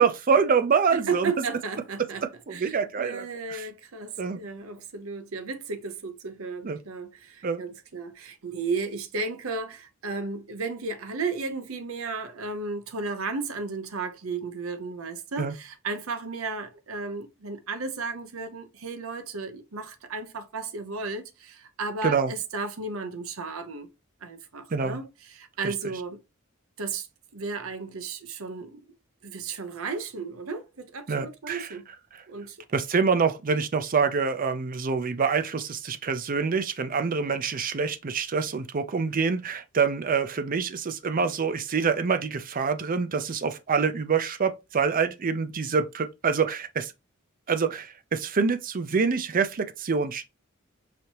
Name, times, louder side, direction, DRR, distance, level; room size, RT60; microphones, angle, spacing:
voice 1, 0.0-1.3 2.5-3.2 3.5-3.6 4.2-4.4 6.6-6.8 7.4-7.6 15.4-15.5 22.0-22.3 24.7-25.0 25.6-25.7 31.1-31.7 32.7-46.9 47.5-50.3, right 5 dB, 40° right, 0.5 m, -26 dB
voice 2, 0.9-2.2 2.5-23.9 24.2-26.2 26.8-27.1 27.3-28.8 29.2-31.8 32.3-32.6, right 4 dB, 80° right, 0.8 m, -34 dB
5.0 x 2.8 x 2.9 m
head